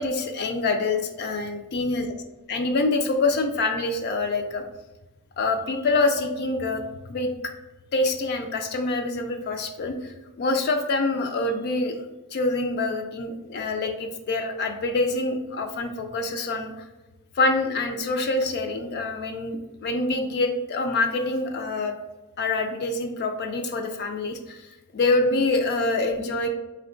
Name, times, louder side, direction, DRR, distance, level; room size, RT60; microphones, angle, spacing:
voice 1, 0.0-2.1 2.5-4.6 5.4-6.8 7.1-7.3 7.9-12.0 12.3-16.7 17.4-21.9 22.4-26.5, left 2 dB, 45° left, 4 dB, 0.4 m, -26 dB
4.2 x 2.2 x 3.7 m, 1.1 s
head